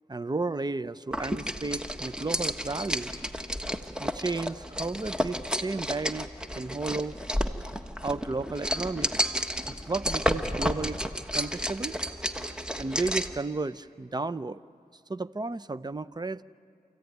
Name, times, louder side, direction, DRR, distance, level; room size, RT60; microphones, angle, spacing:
voice 1, 0.1-3.1 4.0-6.3 6.6-7.1 8.0-9.1 9.7-11.0 11.3-12.0 12.8-14.6 15.1-16.4, right 3 dB, 25° right, 15 dB, 0.7 m, -33 dB
sound 1, 1.1-13.4, equal, 5° right, 1.3 m, -31 dB
28.0 x 15.0 x 9.3 m, 2.2 s
cardioid pair, 45°, 15 cm